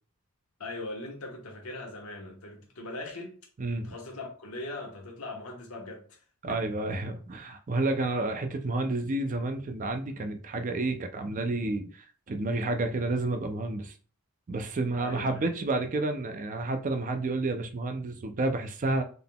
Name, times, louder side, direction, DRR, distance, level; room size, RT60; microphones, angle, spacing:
voice 1, 0.6-3.4 3.8-6.2 6.5-6.6 15.0-15.4, left 2 dB, 75° left, 1.1 m, -40 dB
voice 2, 6.4-13.9 14.5-19.0, right 2 dB, 35° right, 0.4 m, -30 dB
3.8 x 3.6 x 2.3 m
head